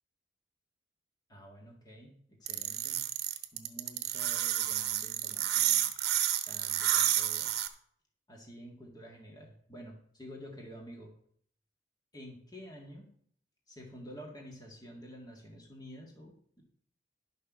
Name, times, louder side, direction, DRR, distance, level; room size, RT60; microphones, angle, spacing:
voice 1, 1.3-3.0 3.5-5.9 6.5-7.5 8.3-11.1 12.1-13.1 13.7-16.6, equal, 20° left, -1 dB, 1.9 m, -49 dB
sound 1, 2.5-7.7, right 12 dB, 60° right, 1.0 m, -30 dB
10.5 x 6.6 x 6.2 m, 0.62 s
head